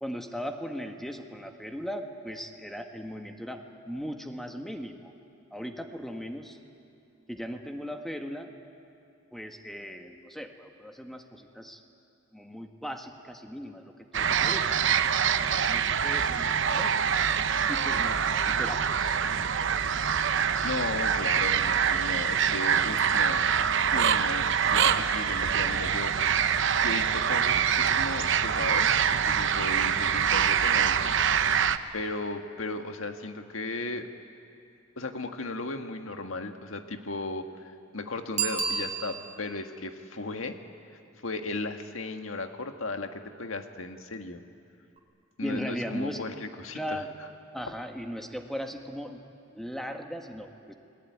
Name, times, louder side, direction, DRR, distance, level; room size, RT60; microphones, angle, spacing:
voice 1, 0.0-5.1 5.5-6.6 7.3-8.5 9.3-11.8 12.3-15.1 15.4-17.1 17.7-19.2 45.4-46.2 46.7-47.1 47.5-49.2 49.5-50.7, equal, ahead, 4 dB, 1.7 m, -38 dB
sound 1, 14.1-31.8, right 7 dB, 70° right, 0.9 m, -25 dB
voice 2, 20.6-23.5 23.9-26.1 26.4-26.6 26.8-31.0 31.3-31.5 31.9-34.1 35.0-40.6 41.2-44.4 45.4-47.0, left 3 dB, 90° left, 6 dB, 1.7 m, -36 dB
Bicycle bell, 38.3-39.5 45.0-45.1, right 6 dB, 35° right, 2.8 m, -31 dB
29.5 x 20.5 x 9.5 m, 2.6 s
head